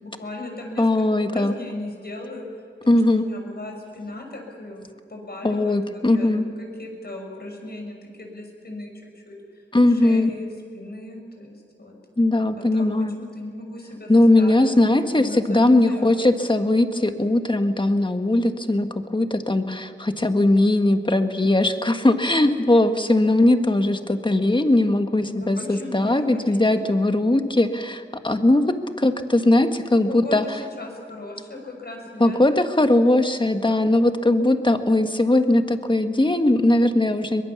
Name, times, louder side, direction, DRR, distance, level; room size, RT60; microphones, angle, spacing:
voice 1, 0.0-9.4 9.9-10.5 10.7-12.0 12.6-12.9 13.2-16.4 25.4-26.9 30.1-30.5 30.8-32.6, left 2 dB, 55° left, 2 dB, 6.1 m, -37 dB
voice 2, 0.8-1.5 2.9-3.2 5.4-6.5 9.7-10.3 12.2-13.2 14.1-30.4 32.2-37.4, left 1 dB, 25° left, 7 dB, 1.6 m, -19 dB
22.5 x 22.0 x 7.1 m, 2.4 s
wide cardioid pair, 70°, 20 cm